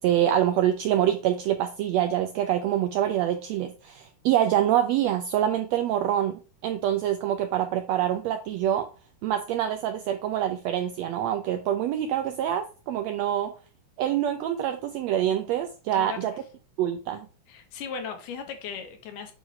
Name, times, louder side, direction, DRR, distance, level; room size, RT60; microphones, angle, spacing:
voice 1, 0.0-8.9 9.2-13.5 14.0-16.3 16.8-17.3, right 11 dB, 90° right, 1.5 m, -25 dB
voice 2, 15.9-16.3 17.5-19.3, left 6 dB, 85° left, 2.6 m, -37 dB
8.0 x 3.1 x 4.8 m
omnidirectional pair, 3.6 m